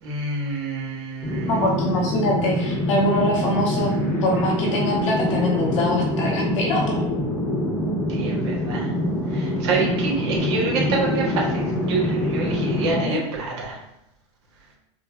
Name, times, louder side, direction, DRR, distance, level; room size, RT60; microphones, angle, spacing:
voice 1, 0.0-1.6 8.1-8.9 9.3-13.8, right 4 dB, 65° right, -2 dB, 1.4 m, -27 dB
sound 1, 1.2-13.0, left 1 dB, 15° left, 1.1 m, -25 dB
voice 2, 1.5-3.9 4.2-7.0 12.9-13.2, left 1 dB, 80° left, -2 dB, 1.3 m, -23 dB
5.1 x 2.3 x 2.6 m, 0.82 s
supercardioid pair, 125°, 16 cm